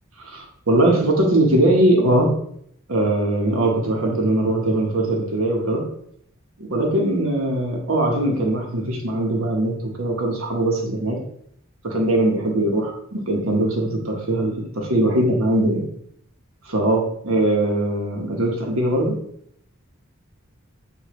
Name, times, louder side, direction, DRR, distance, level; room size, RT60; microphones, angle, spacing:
voice 1, 0.2-2.3 2.9-5.8 6.6-11.2 11.8-15.9 16.7-19.2, right 1 dB, 80° right, 1 dB, 1.1 m, -21 dB
6.7 x 2.6 x 3.1 m, 0.69 s
head